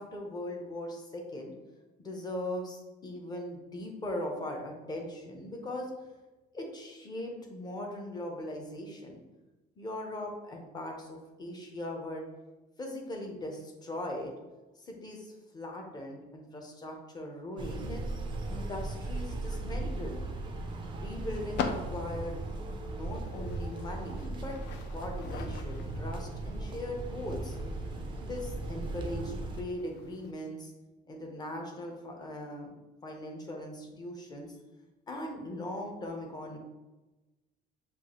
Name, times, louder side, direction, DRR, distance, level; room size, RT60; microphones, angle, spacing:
voice 1, 0.0-1.5 2.0-5.9 6.5-9.2 9.8-12.2 12.8-14.3 14.8-18.1 18.5-20.2 20.9-22.3 22.9-24.6 24.9-27.6 28.2-30.7 31.1-32.7 33.0-34.6 35.1-36.6, left 1 dB, 20° left, 1 dB, 0.7 m, -39 dB
sound 1, 17.6-29.6, right 2 dB, 25° right, 0.3 m, -37 dB
sound 2, 18.8-30.3, left 5 dB, 70° left, 0.4 m, -44 dB
6.3 x 2.4 x 2.9 m, 1.1 s
cardioid pair, 170°, 19 cm